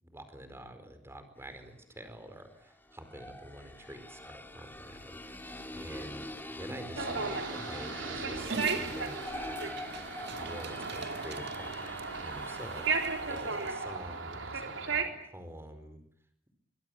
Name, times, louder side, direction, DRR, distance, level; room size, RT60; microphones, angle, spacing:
voice 1, 0.0-5.2 5.7-9.2 10.3-12.8 13.3-14.7 15.0-16.0, right 1 dB, 15° right, 8 dB, 4.6 m, -47 dB
sound 1, 1.5-1.6 2.6-13.9, left 1 dB, 10° left, 2.4 m, -44 dB
sound 2, 6.9-15.0, right 4 dB, 90° right, 3.7 m, -35 dB
Dog, 8.4-13.7, right 5 dB, 60° right, 1.8 m, -45 dB
24.5 x 21.0 x 9.2 m, 0.67 s
head